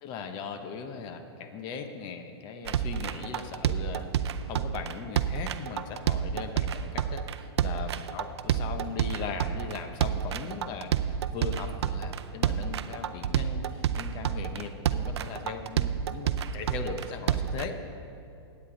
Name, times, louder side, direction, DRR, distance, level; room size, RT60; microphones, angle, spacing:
voice 1, 0.0-17.8, left 5 dB, 35° left, 7 dB, 0.9 m, -39 dB
sound 1, 2.7-17.6, right 9 dB, 80° right, 0.5 m, -29 dB
15.5 x 9.0 x 3.8 m, 2.7 s
hypercardioid pair, 140°, 14 cm